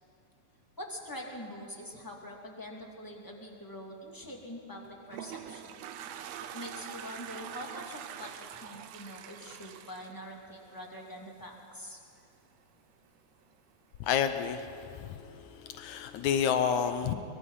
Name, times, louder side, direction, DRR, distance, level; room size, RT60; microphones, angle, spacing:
voice 1, 0.8-5.8 6.5-12.0, equal, 10° left, -1 dB, 1.8 m, -44 dB
Toilet flush, 4.8-11.1, right 9 dB, 70° right, 1.8 m, -44 dB
voice 2, 14.0-17.1, left 8 dB, 75° left, 9 dB, 2.2 m, -30 dB
23.0 x 21.5 x 5.6 m, 2.5 s
omnidirectional pair, 3.5 m